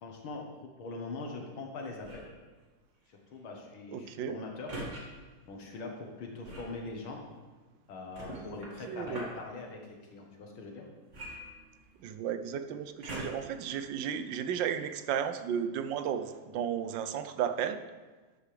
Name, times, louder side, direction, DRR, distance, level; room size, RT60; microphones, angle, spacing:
voice 1, 0.0-0.5 0.8-2.3 3.1-4.8 5.5-7.2 7.9-10.9, left 3 dB, 80° left, 1 dB, 2.2 m, -42 dB
sound 1, 2.0-2.4 4.7-5.0 6.4-6.8 8.1-9.4 11.1-12.1 13.0-13.6 14.2-14.3, right 1 dB, 35° right, 2.4 m, -42 dB
voice 2, 3.9-4.4 8.9-9.2 12.0-17.8, right 8 dB, 75° right, 9 dB, 1.2 m, -34 dB
12.5 x 9.4 x 3.4 m, 1.3 s
omnidirectional pair, 2.2 m